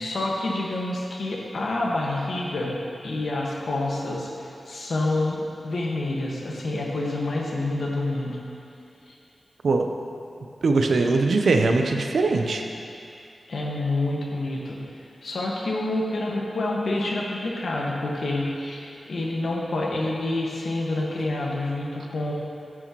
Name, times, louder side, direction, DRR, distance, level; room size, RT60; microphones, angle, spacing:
voice 1, 0.0-2.7 3.0-4.3 4.7-8.4 13.5-14.8 15.2-22.3, left 2 dB, 75° left, -3 dB, 1.5 m, -27 dB
voice 2, 10.6-12.6, right 3 dB, 80° right, 4 dB, 0.6 m, -21 dB
11.0 x 8.8 x 3.0 m, 2.7 s
cardioid pair, 55°, 0 cm